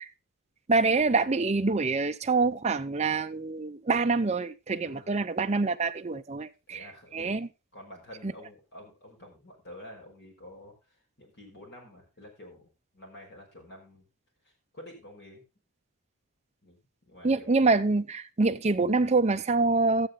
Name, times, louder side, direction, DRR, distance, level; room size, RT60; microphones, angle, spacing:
voice 1, 0.7-6.9 7.1-7.5 8.2-8.3 17.2-20.1, right 3 dB, 30° right, 0.6 m, -26 dB
voice 2, 6.7-7.4 7.7-12.7 12.9-14.1 14.7-15.4 16.6-17.6, left 1 dB, 50° left, 5.5 m, -49 dB
13.0 x 9.0 x 4.0 m
head